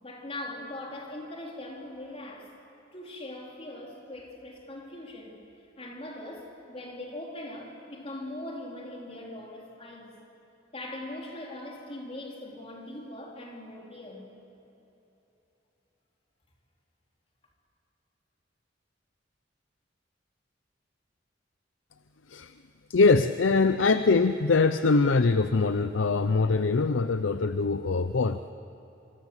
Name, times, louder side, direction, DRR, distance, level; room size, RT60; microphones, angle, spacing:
voice 1, 0.0-2.5 2.9-5.4 5.8-10.1 10.7-14.3, left 1 dB, 30° left, -1 dB, 4.1 m, -41 dB
voice 2, 22.9-28.4, left 4 dB, 85° left, 11 dB, 0.7 m, -23 dB
26.5 x 25.5 x 8.1 m, 2.9 s
head